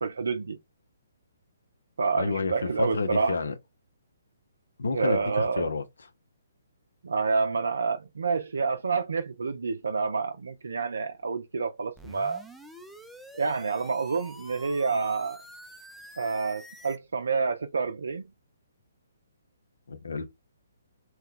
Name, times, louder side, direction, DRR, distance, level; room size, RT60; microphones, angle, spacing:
voice 1, 0.0-0.6 2.0-3.4 4.9-5.7 7.0-12.4 13.3-15.4 16.2-18.3, right 4 dB, 70° right, 0.4 m, -28 dB
voice 2, 2.2-3.5 4.8-5.8 19.9-20.2, left 3 dB, 70° left, 0.7 m, -29 dB
sound 1, 12.0-17.0, right 1 dB, ahead, 0.4 m, -47 dB
2.8 x 2.2 x 3.7 m
figure-of-eight pair, 135°, 0 cm